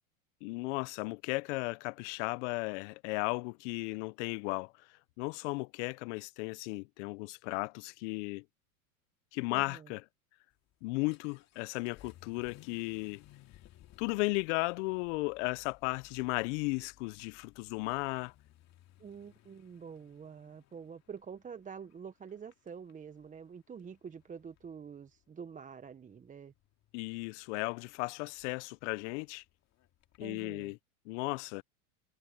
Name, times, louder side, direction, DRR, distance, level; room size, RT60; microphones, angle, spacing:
voice 1, 0.4-4.7 5.2-8.4 9.3-10.0 10.8-13.2 14.0-18.3 26.9-29.4 30.2-30.8 31.1-31.6, left 27 dB, 60° left, 0.7 m, -35 dB
voice 2, 9.5-9.9 19.0-26.5 30.2-30.7, right 6 dB, 20° right, 1.1 m, -47 dB
Vehicle / Accelerating revving vroom, 10.5-30.3, left 13 dB, 40° left, 2.4 m, -62 dB
hypercardioid pair, 105°, 41 cm